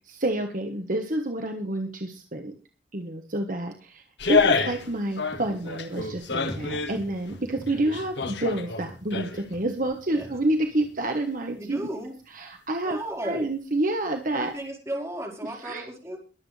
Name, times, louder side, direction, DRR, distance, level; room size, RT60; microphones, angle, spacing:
voice 1, 0.1-2.5 2.9-11.9 12.3-13.0 13.2-14.5 15.4-15.8, right 1 dB, 50° right, 5 dB, 1.5 m, -28 dB
sound 1, 4.2-4.9 5.2-6.9 7.5-9.6 9.9-10.0, left 4 dB, 75° left, 1.8 m, -27 dB
voice 2, 4.3-4.6 10.1-10.3 11.6-12.1 12.8-13.5 14.3-16.2, right 1 dB, 15° right, 0 dB, 4.7 m, -35 dB
sound 2, 5.3-11.1, left 1 dB, 20° left, 3.1 m, -44 dB
22.5 x 8.9 x 3.4 m, 0.35 s
head